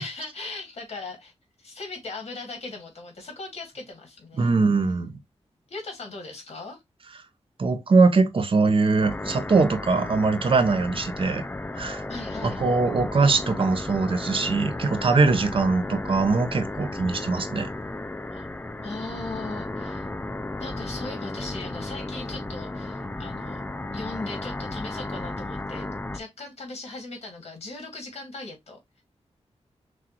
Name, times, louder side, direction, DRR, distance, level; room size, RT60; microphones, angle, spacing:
voice 1, 0.0-1.3 1.6-4.5 4.8-5.1 5.7-6.8 12.1-12.6 18.3-18.5 18.8-20.1 20.6-23.6 23.9-29.0, left 3 dB, 65° left, 1.9 m, -38 dB
voice 2, 4.4-5.1 7.6-11.4 11.8-12.0 12.4-17.7, right 3 dB, 50° right, 0.7 m, -22 dB
sound 1, 9.0-26.2, left 2 dB, 15° left, 0.3 m, -34 dB
6.0 x 2.4 x 2.8 m
wide cardioid pair, 140°, 11 cm